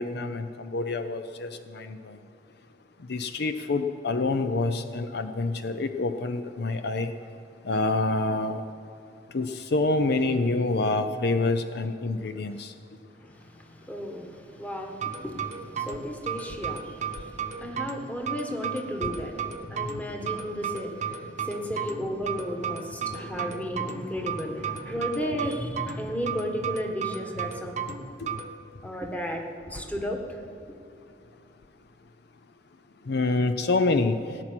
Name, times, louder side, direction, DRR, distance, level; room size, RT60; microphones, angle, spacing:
voice 1, 0.0-2.2 3.1-7.1 7.7-8.6 9.3-12.7 33.1-34.1, left 3 dB, 65° left, 9 dB, 0.6 m, -27 dB
voice 2, 13.2-27.9 28.8-30.4, equal, 10° left, 2 dB, 1.5 m, -34 dB
sound 1, 14.9-28.5, right 7 dB, 40° right, 0.9 m, -34 dB
18.0 x 6.0 x 9.7 m, 2.7 s
head